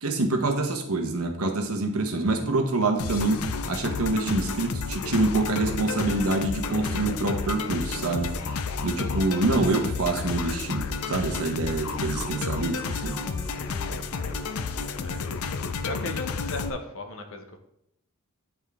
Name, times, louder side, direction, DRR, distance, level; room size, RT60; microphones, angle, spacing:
voice 1, 0.0-8.3 8.8-13.2, right 2 dB, 80° right, 4 dB, 1.1 m, -26 dB
sound 1, 3.0-16.7, left 4 dB, 80° left, 0.5 m, -31 dB
sound 2, 5.5-15.1, left 1 dB, 15° left, 0.9 m, -46 dB
voice 2, 13.4-13.8 15.0-15.2 15.6-17.6, left 2 dB, 65° left, 5 dB, 1.0 m, -38 dB
9.9 x 3.6 x 3.6 m, 0.78 s
head